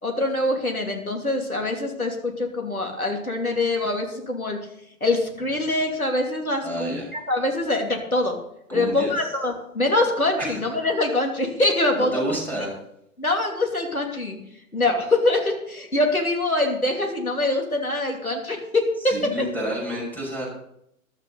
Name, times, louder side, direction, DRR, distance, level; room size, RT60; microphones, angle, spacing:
voice 1, 0.0-4.6 5.0-8.3 8.7-12.7 13.2-14.4 14.7-19.1, left 2 dB, 90° left, 2 dB, 2.9 m, -24 dB
voice 2, 6.6-7.1 8.7-9.1 10.4-10.5 11.9-12.7 19.0-20.5, right 1 dB, 5° left, -2 dB, 6.2 m, -29 dB
15.0 x 12.0 x 4.0 m, 0.76 s
figure-of-eight pair, 110°, 42 cm